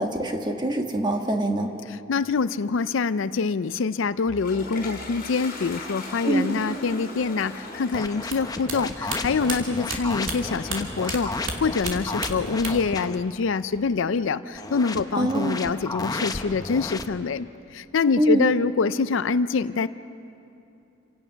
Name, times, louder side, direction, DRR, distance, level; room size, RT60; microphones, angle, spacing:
voice 1, 0.0-1.7 6.2-6.6 15.1-15.6 18.2-18.5, right 1 dB, 20° right, 3 dB, 1.4 m, -24 dB
voice 2, 2.1-19.9, left 4 dB, 75° left, 15 dB, 0.5 m, -25 dB
Toilet flush, 4.0-12.9, left 2 dB, 45° left, 5.0 m, -41 dB
sound 1, 7.9-13.2 14.5-17.0, left 3 dB, 20° left, 0.7 m, -33 dB
sound 2, 8.2-11.2 11.4-13.0 13.2-14.0, right 4 dB, 75° right, 2.8 m, -33 dB
29.0 x 17.0 x 5.8 m, 2.7 s
head